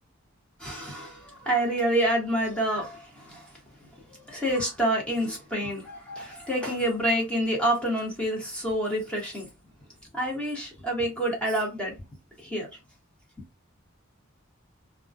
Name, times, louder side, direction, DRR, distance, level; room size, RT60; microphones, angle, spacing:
voice 1, 0.6-3.5 4.1-9.5 10.1-11.9 12.4-12.7, right 1 dB, 5° left, 1.1 m, -28 dB
2.3 x 2.3 x 2.6 m
head